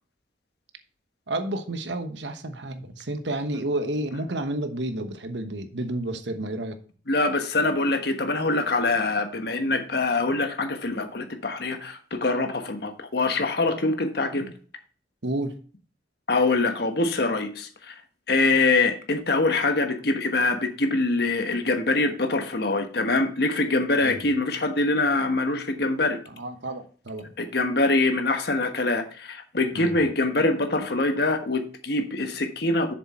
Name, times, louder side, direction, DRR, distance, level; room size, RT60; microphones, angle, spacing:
voice 1, 1.3-6.8 15.2-15.5 24.0-24.2 26.4-27.3 29.7-29.9, right 1 dB, 75° right, 1.2 m, -30 dB
voice 2, 7.1-14.5 16.3-17.9 18.3-26.2 27.4-32.9, left 2 dB, 60° left, 1.3 m, -24 dB
7.3 x 6.8 x 4.3 m
head